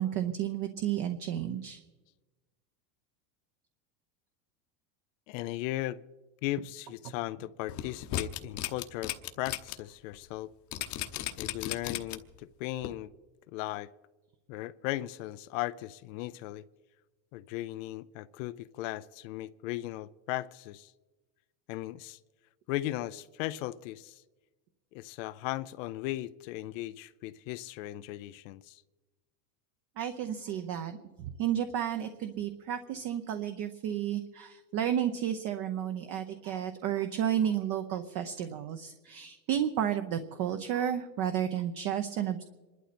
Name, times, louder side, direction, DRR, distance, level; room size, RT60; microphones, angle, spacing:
voice 1, 0.0-1.8 30.0-42.4, right 10 dB, 40° right, 8 dB, 0.9 m, -32 dB
voice 2, 5.3-6.0 6.4-10.5 11.4-13.1 13.5-13.9 14.5-16.6 17.3-20.9 21.7-22.2 22.7-24.2 24.9-28.8, left 16 dB, 50° left, 14 dB, 0.5 m, -37 dB
sound 1, 7.7-9.7 10.1-10.2 10.7-12.4 12.8-12.9, left 13 dB, 35° left, 0.9 m, -35 dB
27.0 x 12.0 x 4.3 m, 1.2 s
supercardioid pair, 150°, 49 cm